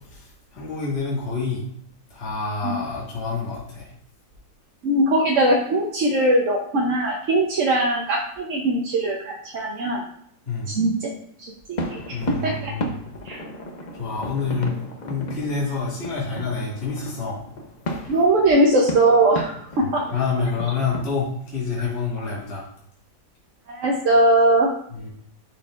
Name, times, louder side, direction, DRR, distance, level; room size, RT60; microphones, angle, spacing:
voice 1, 0.5-1.6 2.1-3.9 10.4-10.7 12.1-12.9 14.0-14.8 15.0-17.4 20.1-22.6 24.9-25.1, left 4 dB, 40° left, -6 dB, 1.9 m, -27 dB
voice 2, 4.8-10.0 10.7-11.1 11.4-12.2 12.4-12.7 13.2-13.4 18.1-20.0 21.8-21.9 23.7-24.7, right 1 dB, 55° right, -1 dB, 1.0 m, -20 dB
sound 1, 11.8-21.2, left 1 dB, 60° left, 0.4 m, -34 dB
11.0 x 4.4 x 2.4 m, 0.68 s
omnidirectional pair, 1.9 m